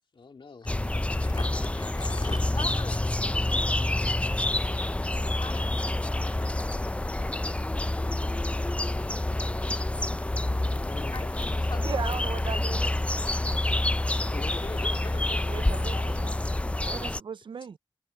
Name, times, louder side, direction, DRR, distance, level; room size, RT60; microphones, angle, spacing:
voice 1, 0.1-0.7 10.8-12.0 13.7-15.5 16.1-16.5, left 4 dB, 85° left, 2.1 m, -44 dB
sound 1, 0.6-17.2, left 1 dB, 15° left, 0.4 m, -28 dB
voice 2, 1.1-3.2 5.4-6.9 11.1-11.4 11.7-12.2 12.5-12.7 15.7-16.3, left 4 dB, 65° left, 2.6 m, -43 dB
voice 3, 11.8-13.0 15.5-16.4 16.8-17.8, right 6 dB, 85° right, 0.4 m, -37 dB
wide cardioid pair, 65°, 8 cm